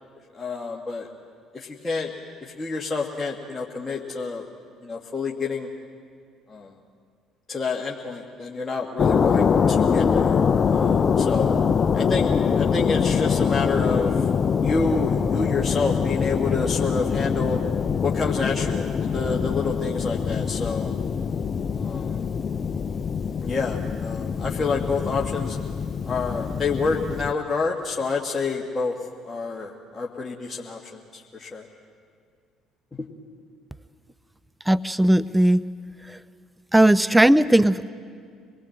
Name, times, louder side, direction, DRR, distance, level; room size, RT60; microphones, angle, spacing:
voice 1, 0.3-1.1 1.5-2.1 2.4-4.4 4.8-5.7 6.5-6.7 7.5-11.5 11.9-14.3 14.6-17.6 18.0-20.9 21.8-22.3 23.4-25.6 26.1-29.0 29.2-31.6 33.0-33.1, left 4 dB, 25° left, -1 dB, 1.8 m, -28 dB
sound 1, 9.0-27.3, left 6 dB, 45° left, 0.7 m, -24 dB
voice 2, 34.7-35.6 36.1-36.2 36.7-37.9, right 1 dB, 10° right, 16 dB, 0.5 m, -18 dB
25.5 x 19.5 x 7.8 m, 2.2 s
hypercardioid pair, 60°, 0 cm